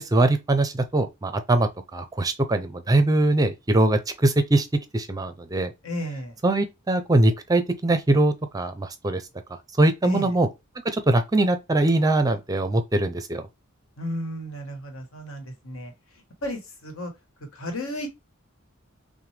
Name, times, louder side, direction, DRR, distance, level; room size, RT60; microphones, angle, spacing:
voice 1, 0.0-4.7 4.9-5.7 6.4-9.2 9.8-10.5 10.9-13.4, right 2 dB, 15° right, 0.5 m, -22 dB
voice 2, 5.8-6.4 10.0-10.3 14.0-15.9 16.4-17.1 17.5-18.1, equal, 75° left, 1.4 m, -33 dB
5.9 x 2.1 x 3.3 m
head